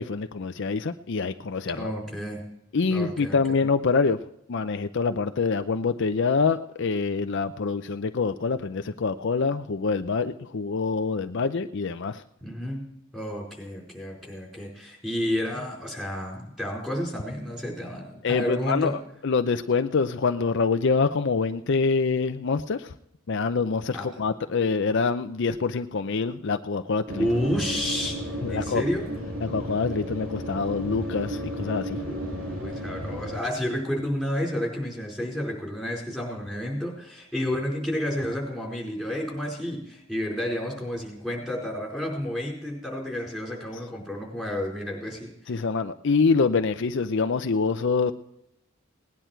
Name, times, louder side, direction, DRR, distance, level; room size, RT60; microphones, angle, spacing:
voice 1, 0.0-1.9 2.7-4.2 4.5-12.2 18.2-19.0 19.2-22.9 23.3-27.3 28.4-28.8 29.4-32.0 45.5-48.1, left 4 dB, 60° left, 9 dB, 0.5 m, -25 dB
voice 2, 1.7-2.4 2.9-3.4 12.4-12.9 13.1-19.0 23.9-24.1 27.2-28.2 28.5-29.1 32.1-45.5, equal, ahead, -2 dB, 4.6 m, -31 dB
sound 1, 27.1-33.4, equal, 75° right, 2.6 m, -33 dB
18.5 x 10.0 x 4.5 m, 0.77 s
head